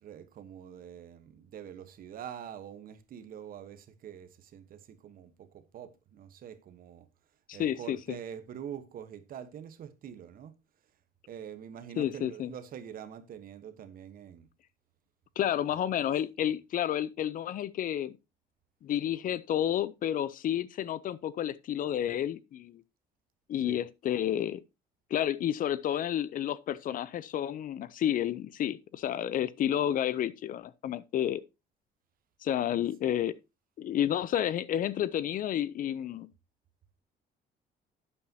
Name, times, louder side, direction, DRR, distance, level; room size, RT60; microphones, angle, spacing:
voice 1, 0.0-7.1 7.5-10.5 11.3-14.5 15.7-15.8 23.6-23.8, right 9 dB, 60° right, 1.2 m, -45 dB
voice 2, 7.5-8.2 12.0-12.5 15.4-18.1 18.8-22.8 23.5-24.6 25.1-31.4 32.4-33.3 33.8-36.3, left 11 dB, 55° left, 0.6 m, -30 dB
11.0 x 8.7 x 2.8 m
cardioid pair, 110°, 17 cm